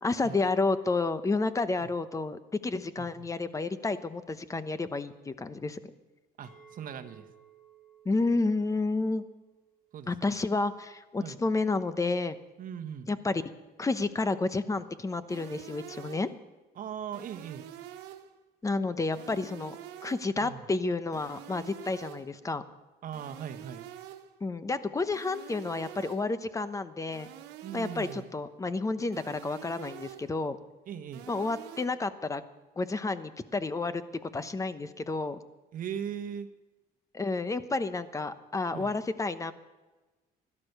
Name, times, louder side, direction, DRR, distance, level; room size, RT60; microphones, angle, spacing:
voice 1, 0.0-5.8 8.0-9.2 10.1-12.4 13.1-13.4 13.8-16.3 18.6-19.8 20.0-22.6 24.4-27.3 27.7-30.6 31.3-32.4 32.8-34.0 34.3-35.4 37.1-39.5, left 3 dB, 20° left, 13 dB, 0.9 m, -30 dB
voice 2, 3.0-3.3 6.4-7.3 9.9-10.4 11.2-11.4 12.6-13.1 16.7-17.7 20.4-20.7 23.0-23.9 27.6-28.3 30.9-31.3 35.7-36.5 38.7-38.9, right 8 dB, 55° right, 7 dB, 1.2 m, -39 dB
Chink clink, 6.4-11.6, right 7 dB, ahead, 2.6 m, -60 dB
sound 1, 15.3-16.4 17.1-18.4 19.1-20.4 21.1-22.4 23.1-24.4 25.1-26.4 27.1-28.4 29.1-30.4 31.1-31.9, right 12 dB, 90° right, 1.3 m, -47 dB
16.5 x 12.0 x 6.7 m, 1.2 s
cardioid pair, 110°, 17 cm